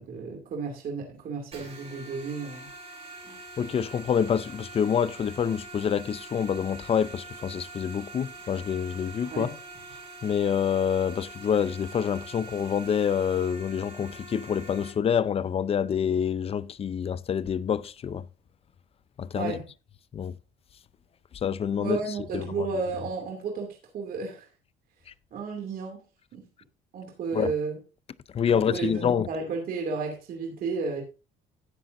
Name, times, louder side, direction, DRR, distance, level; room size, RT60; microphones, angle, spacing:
voice 1, 0.0-2.7 9.3-9.6 19.3-19.7 21.8-24.5 25.3-26.0 26.3-26.4 26.9-27.8 28.5-31.0, right 4 dB, 60° right, 2.7 m, -32 dB
sound 1, 1.5-14.9, right 3 dB, 35° right, 5.5 m, -44 dB
voice 2, 3.6-9.5 10.2-18.2 19.2-19.6 20.1-20.3 21.4-22.0 22.3-22.4 27.3-27.5 28.3-29.3, left 8 dB, 35° left, 0.5 m, -27 dB
13.0 x 8.8 x 2.7 m
cardioid pair, 110°, 17 cm